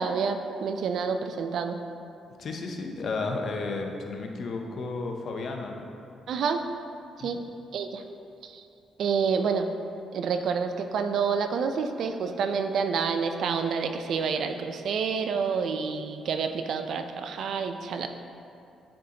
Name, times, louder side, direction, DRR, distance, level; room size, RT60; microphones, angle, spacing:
voice 1, 0.0-1.8 6.3-6.6 7.2-7.4 7.7-8.0 8.4-8.6 9.0-9.7 10.1-18.1, right 5 dB, 65° right, 7 dB, 0.4 m, -28 dB
voice 2, 2.4-5.9 7.2-7.5, left 3 dB, 55° left, 3 dB, 0.6 m, -33 dB
8.7 x 3.8 x 2.8 m, 2.6 s
cardioid pair, 90°, 0 cm